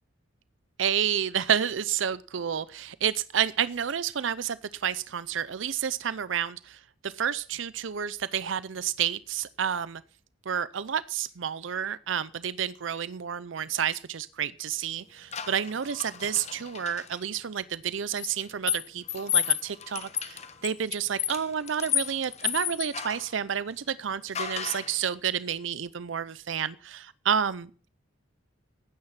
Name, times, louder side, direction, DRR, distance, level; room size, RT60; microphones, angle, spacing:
voice 1, 0.8-10.0 10.5-27.9, right 8 dB, 75° right, 17 dB, 0.6 m, -30 dB
sound 1, 15.3-17.2 18.2-23.3 24.3-25.0, left 10 dB, 35° left, 1.1 m, -32 dB
15.5 x 9.8 x 5.7 m, 0.40 s
head